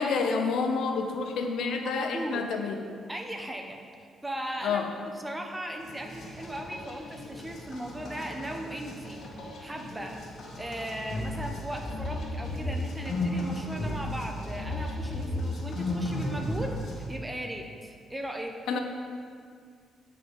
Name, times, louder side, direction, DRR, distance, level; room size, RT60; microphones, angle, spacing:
voice 1, 0.0-2.8 4.6-4.9 18.7-18.8, left 5 dB, 75° left, 4 dB, 0.9 m, -28 dB
voice 2, 1.8-2.5 3.1-3.8 4.2-4.8 5.1-9.2 9.6-10.2 10.6-18.6, right 1 dB, 15° right, 3 dB, 1.1 m, -37 dB
sound 1, 5.8-17.1, left 1 dB, 60° left, 2.0 m, -35 dB
9.4 x 5.8 x 5.5 m, 2.1 s
cardioid pair, 90°, 0 cm